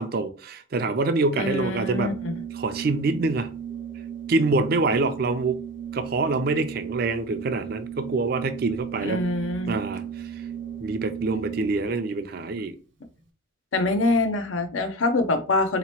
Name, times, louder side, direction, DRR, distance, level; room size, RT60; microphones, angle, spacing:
voice 1, 0.0-2.1 2.5-3.5 4.3-5.6 5.9-9.2 9.7-10.4 10.8-12.8, right 3 dB, 50° right, 0.4 m, -25 dB
voice 2, 1.4-2.3 9.0-9.7 13.7-15.8, left 2 dB, 85° left, 0.6 m, -24 dB
Organ, 1.7-12.0, right 9 dB, 65° right, 0.8 m, -36 dB
4.0 x 2.9 x 2.9 m
head